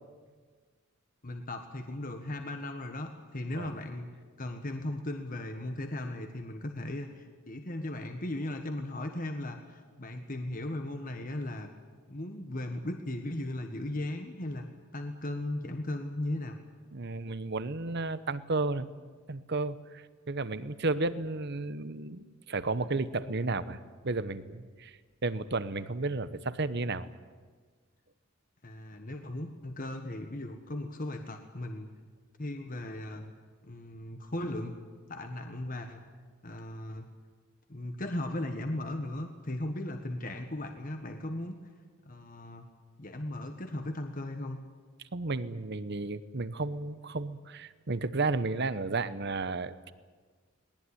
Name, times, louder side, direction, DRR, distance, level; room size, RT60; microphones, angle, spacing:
voice 1, 1.2-4.1 4.4-11.7 12.1-16.6 28.6-31.9 32.4-33.3 33.6-34.7 35.1-36.0 36.4-37.0 37.7-41.6 42.0-42.7 43.0-44.6, left 1 dB, 40° left, 5 dB, 1.5 m, -37 dB
voice 2, 16.9-18.9 19.3-27.1 45.1-49.9, right 3 dB, 50° right, 14 dB, 1.0 m, -33 dB
20.0 x 19.5 x 9.9 m, 1.5 s
head